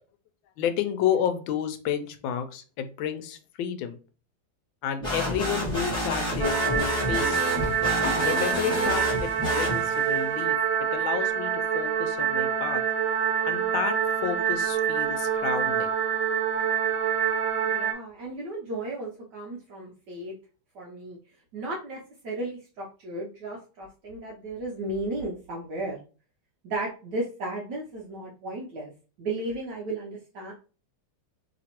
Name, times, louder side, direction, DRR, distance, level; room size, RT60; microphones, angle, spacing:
voice 1, 0.6-4.0 4.8-10.6 10.9-12.8 13.5-14.0 14.2-15.9, left 9 dB, 80° left, 8 dB, 1.3 m, -31 dB
sound 1, 5.0-10.2, equal, 5° left, 1.1 m, -29 dB
sound 2, 6.4-17.9, right 8 dB, 85° right, 1.4 m, -26 dB
voice 2, 17.6-20.3 20.7-21.2 21.5-26.0 26.6-28.9 29.2-30.5, right 2 dB, 70° right, -3 dB, 1.2 m, -34 dB
3.3 x 3.0 x 2.8 m, 0.36 s
omnidirectional pair, 2.1 m